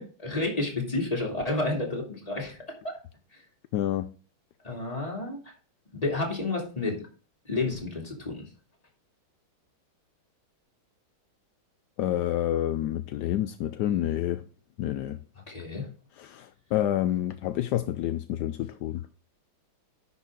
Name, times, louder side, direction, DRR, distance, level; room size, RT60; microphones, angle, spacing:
voice 1, 0.0-2.6 2.8-2.9 4.6-5.4 5.9-7.0 7.4-8.4 15.5-15.9, left 2 dB, 15° left, 2.6 m, -30 dB
voice 2, 3.7-4.1 12.0-14.4 14.8-15.2 16.2-19.0, left 12 dB, 75° left, 0.9 m, -28 dB
10.5 x 6.0 x 3.7 m
omnidirectional pair, 2.2 m